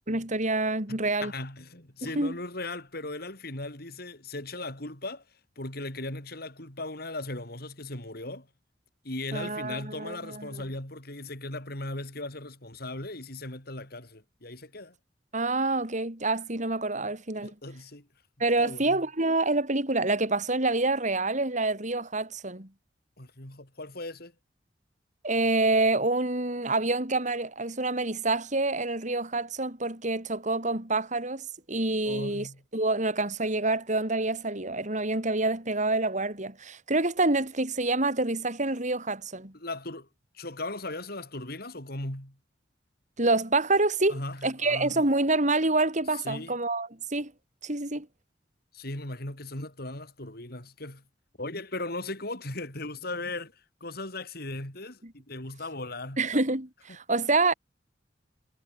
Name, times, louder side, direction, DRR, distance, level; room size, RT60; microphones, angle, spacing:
voice 1, 0.1-1.3 2.0-2.3 9.3-10.6 15.3-17.5 18.4-22.7 25.2-32.5 32.7-39.5 43.2-47.3 47.6-48.1 56.2-57.5, right 2 dB, 40° right, 5.0 m, -27 dB
voice 2, 0.9-5.2 5.6-8.5 9.0-14.9 17.4-18.1 18.6-19.0 23.2-24.3 32.0-32.6 39.5-40.1 40.3-42.4 44.1-45.0 46.2-46.6 48.7-51.0 51.4-53.5 53.8-56.2, left 2 dB, 55° left, 5.8 m, -38 dB
head